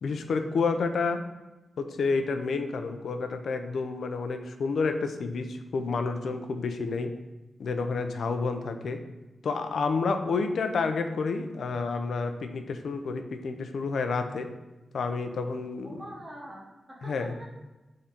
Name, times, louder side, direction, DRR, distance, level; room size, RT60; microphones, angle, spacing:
voice 1, 0.0-1.2 1.8-7.1 7.6-9.0 9.4-14.5 14.9-15.9 17.0-17.3, left 4 dB, 70° left, 7 dB, 0.5 m, -29 dB
voice 2, 15.8-17.5, right 1 dB, 20° right, -2 dB, 1.0 m, -44 dB
6.9 x 3.8 x 4.3 m, 1.1 s
wide cardioid pair, 170°, 0 cm